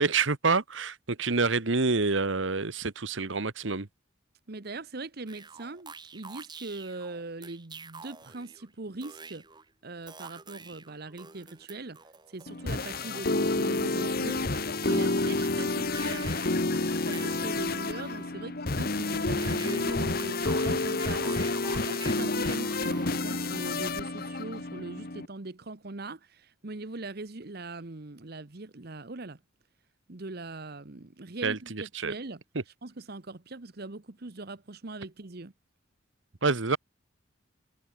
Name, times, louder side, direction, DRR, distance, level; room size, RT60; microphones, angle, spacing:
voice 1, 0.0-3.9 31.4-32.1 36.4-36.8, right 4 dB, 70° right, 1.3 m, -27 dB
voice 2, 4.5-9.4 9.8-12.0 12.3-14.4 14.9-16.3 17.0-29.4 30.1-35.5, right 2 dB, 50° right, 1.1 m, -41 dB
sound 1, 5.3-8.7 9.0-9.7 10.1-13.4 13.7-18.4 19.4-23.5, right 4 dB, 20° right, 3.3 m, -47 dB
sound 2, 12.5-25.3, left 2 dB, 50° left, 1.5 m, -29 dB
head